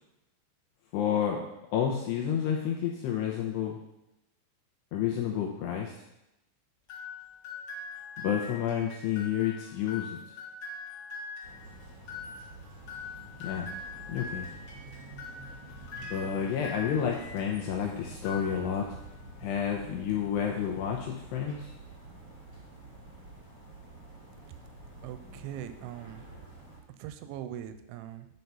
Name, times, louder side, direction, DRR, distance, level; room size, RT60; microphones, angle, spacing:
voice 1, 0.9-1.4 1.7-3.8 4.9-5.9 8.2-10.2 13.4-13.7 14.1-14.5 16.0-18.9 19.4-21.7, left 8 dB, 80° left, 0 dB, 2.5 m, -30 dB
sound 1, 6.9-17.8 18.1-19.0, left 4 dB, 60° left, 1.3 m, -43 dB
sound 2, 11.4-26.8, right 2 dB, 25° right, 1.7 m, -48 dB
voice 2, 25.0-26.3 27.0-28.3, right 11 dB, 80° right, 10 dB, 2.8 m, -41 dB
9.5 x 4.5 x 5.5 m, 0.89 s
omnidirectional pair, 5.6 m